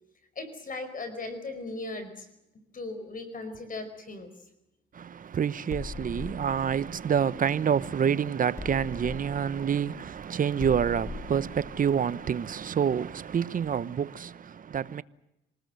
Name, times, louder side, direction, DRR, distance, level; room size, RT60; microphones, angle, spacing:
voice 1, 0.3-2.3 2.7-4.3, left 2 dB, 45° left, 4.9 m, -37 dB
voice 2, 4.9-15.0, right 8 dB, 45° right, 0.9 m, -27 dB
sound 1, 5.7-8.0 8.6-13.2, left 3 dB, 15° left, 2.1 m, -41 dB
26.0 x 19.5 x 7.8 m
cardioid pair, 90°, 20 cm